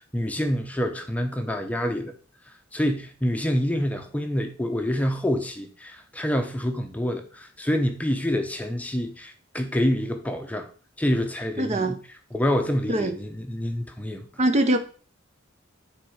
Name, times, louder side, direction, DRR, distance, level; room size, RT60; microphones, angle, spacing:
voice 1, 0.0-2.1 2.7-10.7 11.0-12.0 12.3-14.3, equal, 5° left, 0.7 m, -27 dB
voice 2, 11.6-12.0 12.9-13.2 14.4-14.8, right 1 dB, 35° right, 0.7 m, -22 dB
9.2 x 4.1 x 4.8 m
head